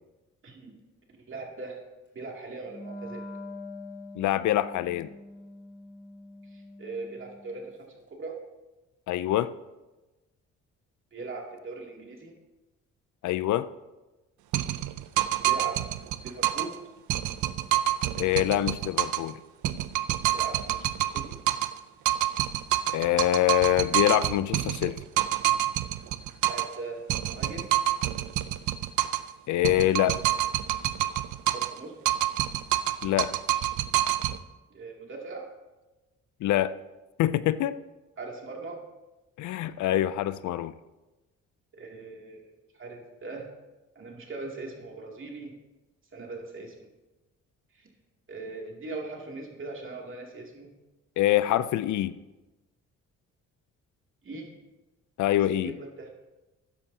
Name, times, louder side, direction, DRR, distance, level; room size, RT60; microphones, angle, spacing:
voice 1, 0.4-0.8 1.3-1.8 2.1-3.2 6.5-7.7 8.1-8.4 11.1-12.3 15.4-15.8 16.2-16.8 20.3-21.4 26.4-27.7 31.5-31.9 34.7-35.5 38.2-38.8 41.8-42.5 42.7-43.5 43.9-45.5 46.1-46.9 47.7-47.9 48.3-50.7 54.2-54.5 55.5-56.1, right 3 dB, 40° right, 0 dB, 2.5 m, -40 dB
Wind instrument woodwind instrument, 2.6-7.7, left 1 dB, 40° left, 2.3 m, -44 dB
voice 2, 4.2-5.1 9.1-9.5 13.2-13.7 18.2-19.4 22.9-25.0 29.5-30.2 33.0-33.3 36.4-36.7 37.2-37.8 39.4-40.7 51.2-52.1 55.2-55.8, left 13 dB, 75° left, 15 dB, 0.5 m, -25 dB
sound 1, 14.5-16.8 17.1-19.3 19.6-21.8 22.0-26.8 27.1-29.3 29.6-31.8 32.0-34.4, right 13 dB, 80° right, 0.6 m, -27 dB
13.5 x 10.0 x 2.8 m, 1.1 s
cardioid pair, 90°, 30 cm